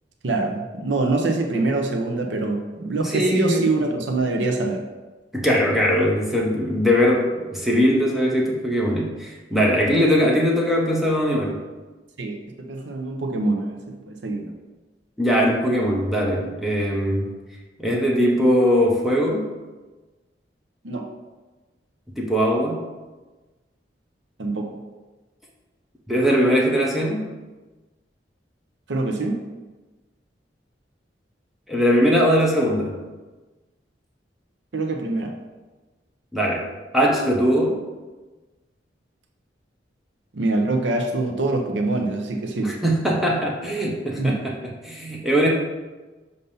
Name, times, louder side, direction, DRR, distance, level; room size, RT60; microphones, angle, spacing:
voice 1, 0.2-4.8 12.2-14.5 20.8-21.1 24.4-24.8 28.9-29.4 34.7-35.3 40.3-42.8 44.2-44.4, right 2 dB, 85° right, 3 dB, 0.7 m, -24 dB
voice 2, 3.0-3.7 5.3-11.6 15.2-17.3 17.8-19.5 22.2-22.8 26.1-27.3 31.7-33.0 36.3-36.7 36.9-37.8 42.6-44.6 44.8-45.5, equal, ahead, -3 dB, 0.7 m, -20 dB
6.6 x 2.7 x 5.4 m, 1.2 s
head